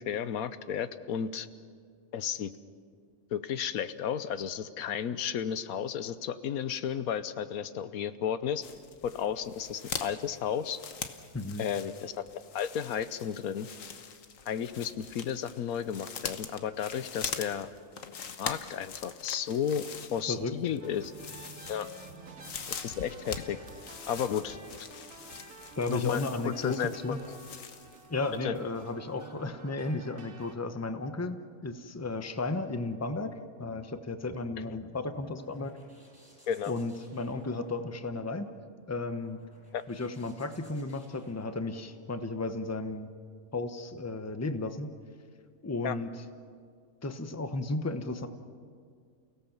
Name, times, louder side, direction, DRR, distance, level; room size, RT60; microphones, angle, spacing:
voice 1, 0.0-1.5 2.1-2.5 3.3-8.7 9.0-10.8 11.6-12.2 12.5-13.7 14.5-17.7 18.4-21.1 21.7-21.9 22.7-23.6 24.1-24.6 25.9-27.4 28.4-28.5 36.5-36.7 39.7-39.8 45.8-46.0, left 8 dB, 85° left, 13 dB, 1.3 m, -33 dB
sound 1, 8.6-28.1 28.3-28.4, left 6 dB, 70° left, 1.5 m, -43 dB
voice 2, 11.3-11.6 20.3-20.5 25.8-26.8 27.0-27.2 28.1-31.4 31.6-33.3 33.6-35.7 36.7-38.5 38.9-39.4 39.9-43.1 43.5-44.9 45.6-46.1 47.0-48.3, left 3 dB, 15° left, 9 dB, 0.9 m, -34 dB
sound 2, 20.8-30.6, right 3 dB, 85° right, 2.3 m, -50 dB
sound 3, 34.8-42.3, equal, 5° right, 7.1 m, -61 dB
29.5 x 17.0 x 7.3 m, 2.1 s
omnidirectional pair, 1.5 m